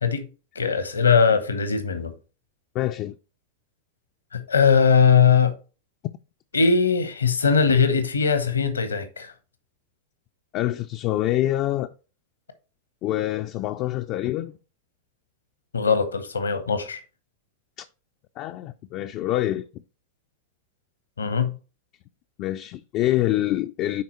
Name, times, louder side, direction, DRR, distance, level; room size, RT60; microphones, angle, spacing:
voice 1, 0.5-2.1 4.3-5.5 6.5-9.3 15.7-17.0 21.2-21.5, left 6 dB, 75° left, 0.9 m, -20 dB
voice 2, 2.7-3.2 10.5-11.9 13.0-14.6 18.4-19.7 22.4-24.0, left 14 dB, 40° left, 0.3 m, -25 dB
9.6 x 4.1 x 3.1 m
figure-of-eight pair, 90°, 0 cm